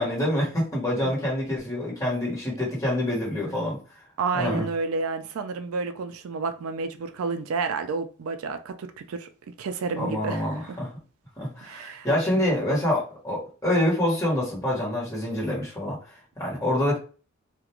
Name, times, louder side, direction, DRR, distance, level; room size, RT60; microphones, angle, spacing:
voice 1, 0.0-3.8 4.3-4.6 10.0-10.9 11.4-16.0 16.4-17.0, left 1 dB, 15° left, 1.1 m, -26 dB
voice 2, 4.2-9.3 9.6-10.5 11.6-12.1, right 4 dB, 90° right, 0.4 m, -30 dB
2.4 x 2.2 x 2.9 m
head